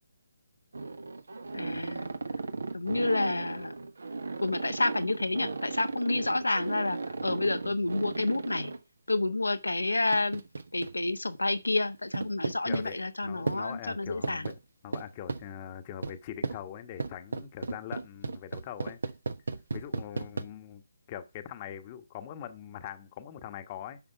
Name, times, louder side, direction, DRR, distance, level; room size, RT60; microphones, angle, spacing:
sound 1, 0.7-8.8 10.1-11.2 12.1-12.9 13.5-13.6 14.2-14.6 14.9-15.4 16.0-16.2 16.4-16.6 17.0-20.4, right 3 dB, 60° right, 1.1 m, -35 dB
voice 1, 1.5-2.1 2.7-3.7 4.4-8.7 9.1-10.4 10.7-14.5, left 2 dB, 75° left, 1.1 m, -29 dB
voice 2, 12.6-13.0 13.2-19.0 19.7-20.8 21.1-24.0, left 10 dB, 25° left, 1.2 m, -42 dB
11.0 x 5.9 x 5.7 m
figure-of-eight pair, 140°, 0 cm